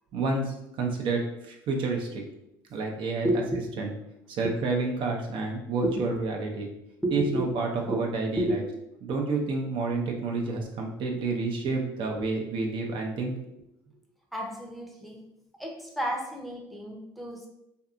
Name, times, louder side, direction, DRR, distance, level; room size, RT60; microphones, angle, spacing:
voice 1, 0.1-2.2 2.7-3.3 3.8-3.9 4.3-6.7 7.1-8.6 9.0-13.3, right 3 dB, 55° right, 1 dB, 0.5 m, -29 dB
voice 2, 7.0-7.4 7.9-8.0 8.3-8.6 14.3-15.2 15.6-17.5, right 1 dB, ahead, 0 dB, 0.6 m, -30 dB
2.6 x 2.4 x 2.4 m, 0.85 s
hypercardioid pair, 75°, 10 cm